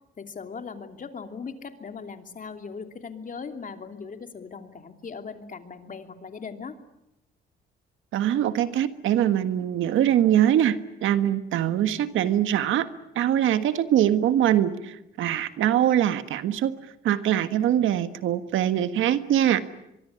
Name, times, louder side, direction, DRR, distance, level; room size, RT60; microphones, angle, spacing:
voice 1, 0.2-6.7, left 5 dB, 40° left, 6 dB, 3.0 m, -39 dB
voice 2, 8.1-12.9 13.1-16.8 17.0-19.6, right 11 dB, 80° right, 11 dB, 1.6 m, -23 dB
24.0 x 23.5 x 9.7 m, 0.86 s
cardioid pair, 90°, 20 cm